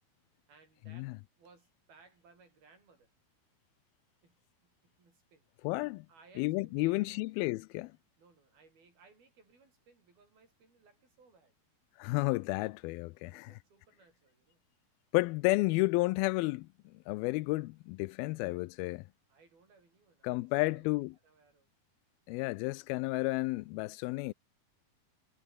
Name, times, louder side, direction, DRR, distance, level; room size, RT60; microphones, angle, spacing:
voice 1, 0.5-3.1 4.2-5.5 6.1-7.3 8.2-11.5 13.2-14.6 15.6-15.8 19.3-20.9 21.2-21.7, right 4 dB, 80° right, 9.2 m, -63 dB
voice 2, 5.6-6.1 6.4-7.9 12.0-13.5 15.1-19.1 20.2-21.1 22.3-24.3, left 22 dB, 90° left, 2.5 m, -32 dB
omnidirectional pair, 4.2 m